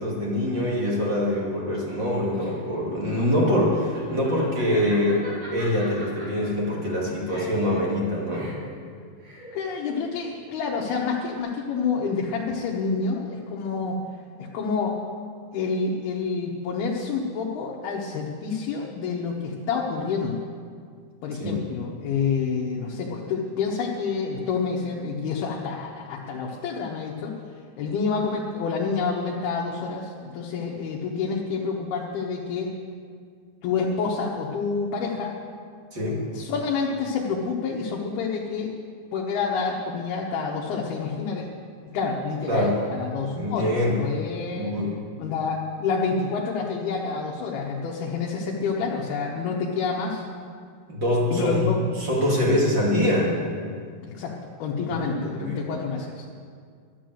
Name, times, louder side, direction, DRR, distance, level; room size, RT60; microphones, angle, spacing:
voice 1, 0.0-8.5 21.4-21.6 35.9-36.2 42.5-42.8 43.3-44.0 44.6-45.0 50.9-51.6 52.0-53.4 54.8-55.6, left 1 dB, 30° right, -4 dB, 2.7 m, -24 dB
Laughter, 2.3-11.4, equal, 65° right, 5.4 m, -43 dB
voice 2, 9.5-14.0 14.4-14.9 15.5-20.4 21.2-27.3 27.8-32.7 33.6-35.4 36.3-38.7 39.1-41.5 41.9-44.7 45.2-50.2 51.3-51.8 54.0-54.3 54.6-56.3, left 5 dB, 75° left, -2 dB, 3.1 m, -28 dB
12.0 x 11.5 x 7.7 m, 2.1 s
omnidirectional pair, 4.6 m